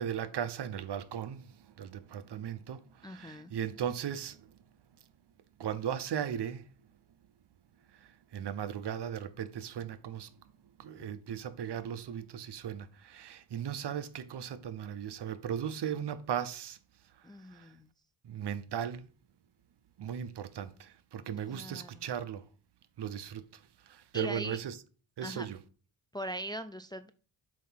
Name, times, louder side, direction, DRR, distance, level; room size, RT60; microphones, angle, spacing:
voice 1, 0.0-4.6 5.6-6.7 7.9-10.3 10.8-16.8 17.5-17.7 18.2-19.1 20.0-22.4 23.0-24.8 25.2-25.6, right 9 dB, 55° right, 0.8 m, -37 dB
voice 2, 3.0-3.5 17.2-17.9 21.5-22.0 24.1-24.6 25.2-25.5 26.1-27.1, right 1 dB, 10° left, 0.4 m, -40 dB
7.5 x 2.8 x 5.6 m
cardioid pair, 70°, 48 cm